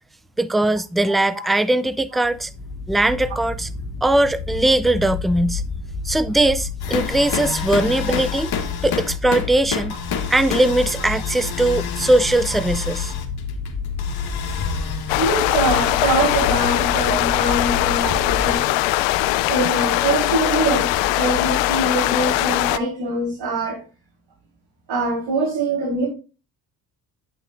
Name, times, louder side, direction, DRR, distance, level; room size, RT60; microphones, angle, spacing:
voice 1, 0.4-2.5 2.9-3.7 4.0-5.6 6.0-8.5 8.8-9.9 10.3-13.1, right 1 dB, ahead, 0.3 m, -20 dB
sound 1, 2.3-18.6, left 4 dB, 30° left, 1.5 m, -30 dB
sound 2, 6.8-22.0, left 6 dB, 55° left, 1.6 m, -31 dB
sound 3, 15.1-22.8, left 17 dB, 85° left, 0.5 m, -21 dB
voice 2, 15.2-18.8 19.5-23.8 24.9-26.1, right 2 dB, 65° right, 3.9 m, -23 dB
9.0 x 8.2 x 2.5 m
supercardioid pair, 65°, 44 cm